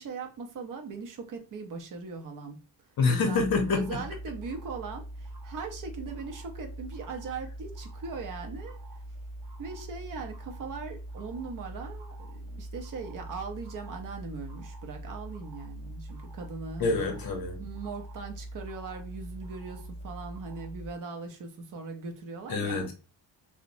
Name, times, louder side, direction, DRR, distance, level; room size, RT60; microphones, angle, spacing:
voice 1, 0.0-2.6 3.1-8.8 9.6-17.1 17.6-22.9, right 4 dB, 45° right, 0.6 m, -40 dB
voice 2, 3.0-4.0 16.8-17.6 22.5-22.9, left 4 dB, 55° left, 0.7 m, -27 dB
sound 1, 3.3-20.9, right 1 dB, 70° right, 0.9 m, -43 dB
2.9 x 2.1 x 2.5 m
wide cardioid pair, 175°, 44 cm